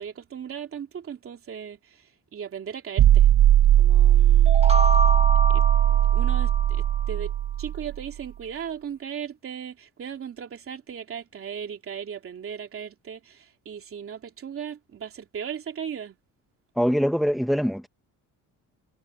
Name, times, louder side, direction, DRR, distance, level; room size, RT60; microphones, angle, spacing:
voice 1, 0.0-3.3 3.8-4.6 5.5-5.6 6.1-7.3 7.6-16.2, right 8 dB, 40° right, 3.0 m, -37 dB
sound 1, 3.0-8.0, right 12 dB, 70° right, 1.5 m, -18 dB
sound 2, 4.5-7.2, equal, 20° right, 1.6 m, -28 dB
voice 2, 16.8-17.9, equal, ahead, 1.1 m, -23 dB
cardioid pair, 140°, 32 cm